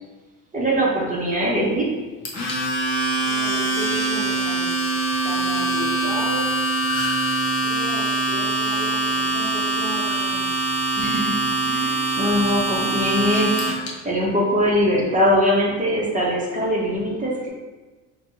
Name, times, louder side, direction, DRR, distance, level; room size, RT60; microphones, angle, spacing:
voice 1, 0.5-1.9 11.0-11.4 11.6-13.5 14.0-17.5, equal, 15° right, -5 dB, 1.0 m, -21 dB
Domestic sounds home sounds, 2.2-13.9, right 2 dB, 35° left, 1.0 m, -23 dB
voice 2, 3.2-4.8 5.2-6.5 7.2-10.4, left 1 dB, 70° left, -5 dB, 1.4 m, -34 dB
sound 1, 6.8-7.3 9.0-9.2 10.1-10.2 11.3-11.5, left 2 dB, 10° left, 0.8 m, -32 dB
3.2 x 3.0 x 2.9 m, 1.2 s
supercardioid pair, 90°, 44 cm